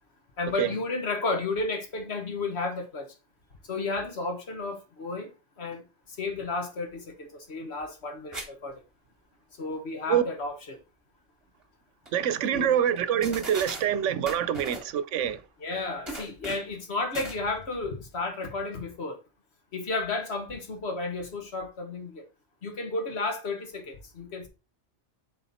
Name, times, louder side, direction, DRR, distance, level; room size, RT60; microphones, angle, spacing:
voice 1, 0.4-3.1 3.7-5.3 5.6-5.8 6.2-8.7 9.6-10.8 12.5-12.7 15.6-19.2 19.7-22.2 22.6-24.5, left 3 dB, 65° left, 1.6 m, -32 dB
sound 1, 8.3-8.5 8.8-8.9 11.6-11.7 12.0-12.1 13.0-13.1 13.2-13.8 14.2-14.9 16.0-16.7 17.1-17.4, right 2 dB, 25° right, 1.9 m, -37 dB
voice 2, 12.1-15.4, right 9 dB, 90° right, 1.0 m, -25 dB
7.1 x 4.0 x 4.2 m
omnidirectional pair, 1.2 m